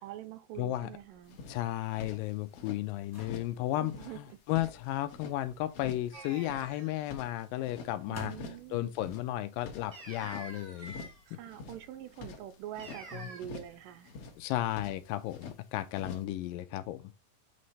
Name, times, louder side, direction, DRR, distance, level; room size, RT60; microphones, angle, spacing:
voice 1, 0.0-1.4 3.8-4.4 8.1-8.9 11.3-14.1, right 12 dB, 80° right, 2.1 m, -45 dB
voice 2, 0.6-0.9 1.5-8.3 8.7-10.9 13.1-13.3 14.4-17.1, left 14 dB, 80° left, 2.2 m, -34 dB
sound 1, 0.7-6.7 7.8-9.1 10.2-11.3 11.7-11.9 12.8-14.5, left 1 dB, 10° left, 0.6 m, -52 dB
sound 2, 1.3-2.8 3.2-3.6 3.8-5.4 5.7-6.1 6.4-7.9 8.3-8.7 8.9-10.5 10.8-11.2 11.5-13.0 13.4-13.8 14.0-15.6 15.9-16.2, left 4 dB, 65° left, 1.6 m, -47 dB
sound 3, 6.1-7.0 9.9-11.2 12.8-13.4, right 2 dB, 65° right, 0.8 m, -48 dB
8.5 x 3.2 x 4.0 m
omnidirectional pair, 4.1 m